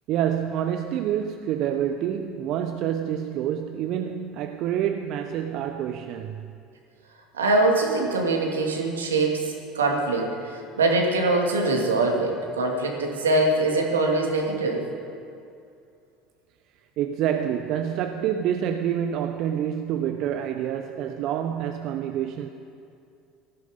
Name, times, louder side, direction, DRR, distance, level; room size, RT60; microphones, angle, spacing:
voice 1, 0.1-6.5 17.0-22.5, right 9 dB, 55° right, 0.8 m, -27 dB
voice 2, 7.3-14.9, right 2 dB, 85° right, 2.5 m, -23 dB
18.0 x 15.0 x 5.2 m
hypercardioid pair, 65°, 0 cm